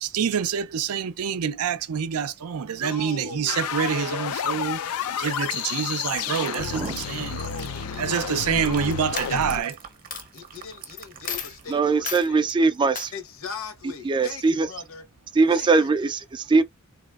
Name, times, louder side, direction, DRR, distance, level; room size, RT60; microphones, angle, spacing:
voice 1, 0.0-4.8 5.1-7.4 8.0-9.7, right 7 dB, 90° right, 0.4 m, -27 dB
voice 2, 2.6-3.7 6.3-9.8 10.3-12.5 13.1-15.1 15.5-15.9, left 5 dB, 70° left, 1.1 m, -40 dB
sound 1, 3.5-9.6, left 8 dB, 85° left, 0.4 m, -30 dB
sound 2, 5.8-11.9 12.2-12.4, right 7 dB, 40° right, 0.7 m, -45 dB
voice 3, 6.3-6.9 11.7-13.1 14.0-14.7 15.3-16.6, right 4 dB, 20° right, 0.3 m, -22 dB
Coin (dropping), 8.5-8.8 9.2-9.8 10.1-10.2 11.0-11.1 11.3-11.6 12.0-12.3 12.9-13.1, left 7 dB, 40° left, 0.7 m, -33 dB
4.0 x 2.8 x 2.3 m
head